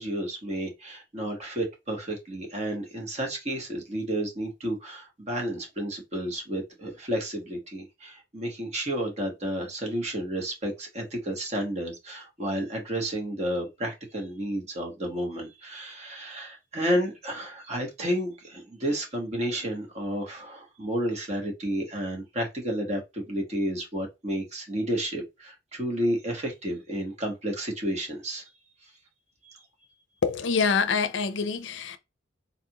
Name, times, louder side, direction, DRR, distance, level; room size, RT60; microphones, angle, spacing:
voice 1, 0.0-28.4 29.4-29.6, right 1 dB, 35° right, 1.2 m, -31 dB
voice 2, 30.2-32.0, left 5 dB, 70° left, 0.5 m, -25 dB
4.1 x 2.4 x 2.9 m
head